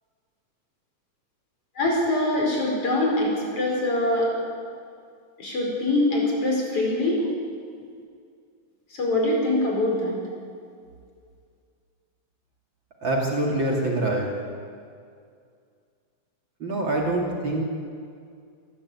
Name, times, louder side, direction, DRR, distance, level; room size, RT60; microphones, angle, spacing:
voice 1, 1.8-4.3 5.4-7.2 8.9-10.2, left 1 dB, 45° left, -1 dB, 5.7 m, -23 dB
voice 2, 13.0-14.3 16.6-17.7, right 2 dB, 40° right, -2 dB, 3.1 m, -25 dB
27.5 x 13.0 x 8.5 m, 2.3 s
omnidirectional pair, 3.5 m